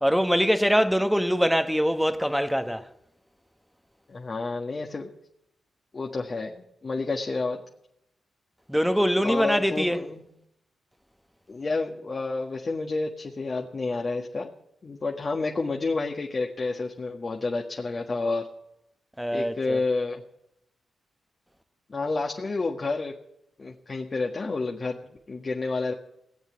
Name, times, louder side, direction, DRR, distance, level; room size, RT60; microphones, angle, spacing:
voice 1, 0.0-2.9 8.7-10.0 19.2-19.8, equal, ahead, 1.2 m, -23 dB
voice 2, 4.1-5.1 5.9-7.6 9.2-10.3 11.5-14.5 14.8-18.5 19.3-20.2 21.9-23.1 23.6-25.0 25.3-25.9, left 3 dB, 45° left, 1.7 m, -29 dB
17.5 x 8.2 x 9.5 m
supercardioid pair, 45°, 0 cm